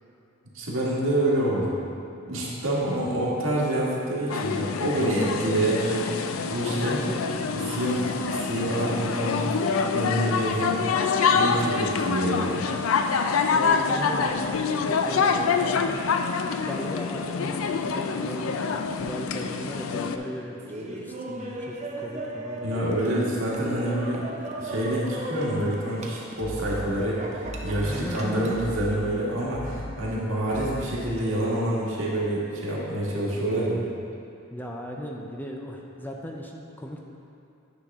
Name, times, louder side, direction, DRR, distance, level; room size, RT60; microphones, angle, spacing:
voice 1, 0.5-1.7 2.3-7.0 7.7-9.5 9.9-10.8 11.3-12.6 22.6-24.3 24.6-33.8, right 1 dB, 80° right, -6 dB, 1.8 m, -27 dB
sound 1, 4.3-20.2, left 5 dB, 85° left, 0.4 m, -26 dB
voice 2, 6.7-7.2 13.5-16.0 16.6-22.8 27.8-28.6 34.5-37.0, equal, 10° left, 0 dB, 0.5 m, -37 dB
Laughter, 20.6-28.7, right 1 dB, 35° right, 0.7 m, -36 dB
sound 2, 26.4-31.4, equal, 65° left, 1.0 m, -38 dB
9.7 x 5.8 x 3.6 m, 2.7 s
head